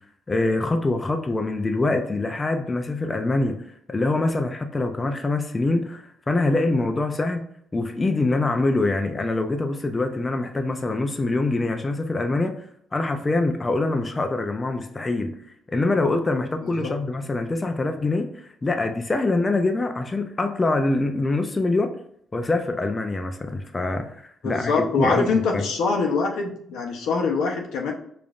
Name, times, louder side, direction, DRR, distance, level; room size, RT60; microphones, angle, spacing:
voice 1, 0.3-3.6 3.9-12.5 12.9-15.3 15.7-21.9 22.3-25.6, left 2 dB, 25° left, 6 dB, 0.4 m, -24 dB
voice 2, 16.6-16.9 24.4-27.9, left 4 dB, 85° left, 1 dB, 0.7 m, -24 dB
5.0 x 2.5 x 2.4 m, 0.68 s
cardioid pair, 90°, 0 cm